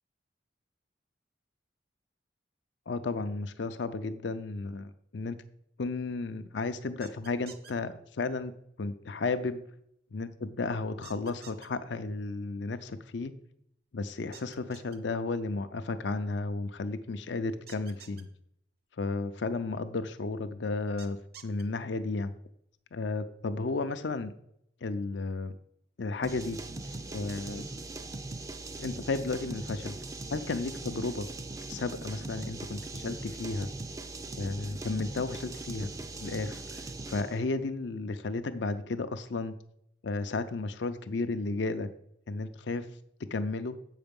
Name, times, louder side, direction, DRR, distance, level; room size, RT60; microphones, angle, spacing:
voice 1, 2.9-5.4 5.8-8.5 8.8-9.6 10.1-13.3 13.9-18.3 19.0-21.2 21.4-22.3 22.9-24.3 24.8-25.5 26.0-26.6 27.1-27.6 28.8-29.9 30.3-31.3 31.7-33.7 34.4-35.9 36.2-39.5 40.0-41.9 42.3-42.9 43.3-43.8, left 3 dB, 70° left, 10 dB, 0.5 m, -33 dB
sound 1, 7.0-7.7 11.0-11.7 14.3-15.0 17.7-18.2 21.0-21.6, right 7 dB, 55° right, 0.8 m, -50 dB
sound 2, 26.2-37.4, right 2 dB, 20° right, 0.4 m, -40 dB
8.0 x 5.7 x 5.3 m, 0.73 s
head